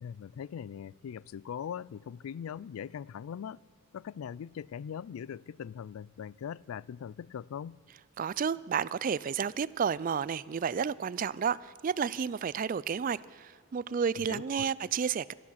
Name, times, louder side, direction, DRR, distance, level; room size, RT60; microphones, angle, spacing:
voice 1, 0.0-3.6 3.9-7.8 14.2-14.7, left 8 dB, 75° left, 22 dB, 0.3 m, -41 dB
voice 2, 8.2-15.3, right 7 dB, 40° right, 20 dB, 0.3 m, -31 dB
18.0 x 13.0 x 5.7 m, 2.1 s
head